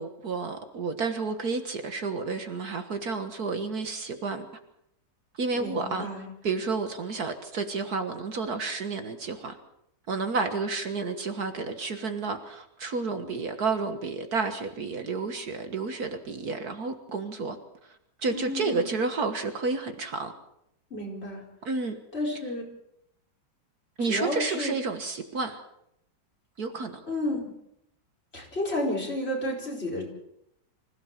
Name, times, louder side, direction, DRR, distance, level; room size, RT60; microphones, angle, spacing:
voice 1, 0.0-4.5 5.3-6.1 6.4-9.6 10.1-17.6 17.8-20.3 21.6-22.0 24.0-25.6 26.6-27.0, right 4 dB, 60° right, 7 dB, 1.9 m, -31 dB
voice 2, 5.5-6.3 18.3-19.0 20.9-21.4 22.1-22.6 24.0-24.7 27.1-27.4 28.3-30.0, left 1 dB, 35° left, -1 dB, 5.1 m, -31 dB
25.5 x 16.5 x 7.3 m, 0.79 s
omnidirectional pair, 1.9 m